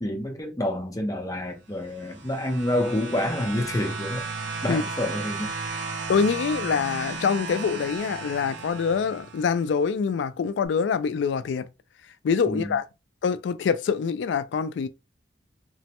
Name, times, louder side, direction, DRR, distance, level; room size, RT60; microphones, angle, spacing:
voice 1, 0.0-4.2 4.6-5.5 12.5-12.8, left 1 dB, 20° left, 0.6 m, -28 dB
sound 1, 1.8-9.6 10.6-10.7, right 4 dB, 70° right, 0.5 m, -35 dB
voice 2, 6.1-11.7 12.2-12.8 13.2-14.9, left 6 dB, 70° left, 0.3 m, -25 dB
3.0 x 2.1 x 2.9 m
head